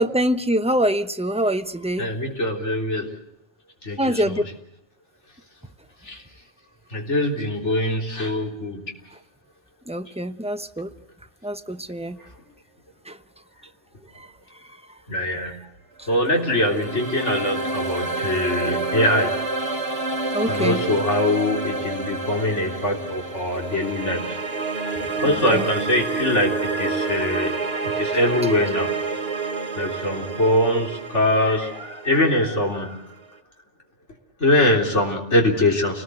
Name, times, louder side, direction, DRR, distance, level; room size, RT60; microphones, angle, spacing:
voice 1, 0.0-2.1 4.0-4.4 9.9-10.9 11.4-12.2 13.1-13.2 20.3-20.8 25.2-25.6, right 1 dB, 5° right, 8 dB, 0.8 m, -24 dB
voice 2, 2.0-3.1 3.8-4.4 6.0-6.2 6.9-8.9 12.2-12.3 15.1-15.5 16.1-19.3 20.5-24.4 25.2-27.5 27.8-28.9 29.8-33.0 34.4-36.0, left 1 dB, 85° left, 1 dB, 4.1 m, -23 dB
sound 1, 16.1-33.2, right 3 dB, 60° right, 1.6 m, -28 dB
29.0 x 19.5 x 7.9 m, 0.77 s
omnidirectional pair, 1.2 m